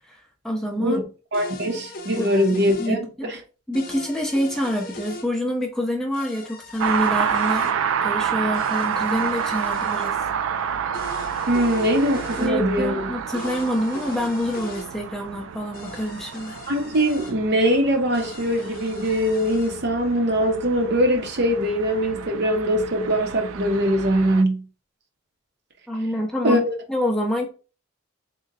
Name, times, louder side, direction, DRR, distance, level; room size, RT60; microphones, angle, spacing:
voice 1, 0.4-1.0 2.2-2.3 2.8-3.3 3.7-10.2 12.4-16.6 25.9-26.6 26.9-27.5, equal, 5° left, 0.6 m, -26 dB
sound 1, 1.3-2.9 3.7-5.3 6.1-7.7 8.5-10.1 10.9-12.5 13.3-14.9 15.7-17.3 18.1-19.7, left 2 dB, 45° left, 0.6 m, -39 dB
voice 2, 1.3-3.4 11.5-13.1 16.7-24.6 26.4-26.6, equal, 55° right, 0.7 m, -22 dB
sound 2, 6.8-24.4, right 7 dB, 80° right, 0.3 m, -29 dB
3.8 x 2.1 x 3.9 m
head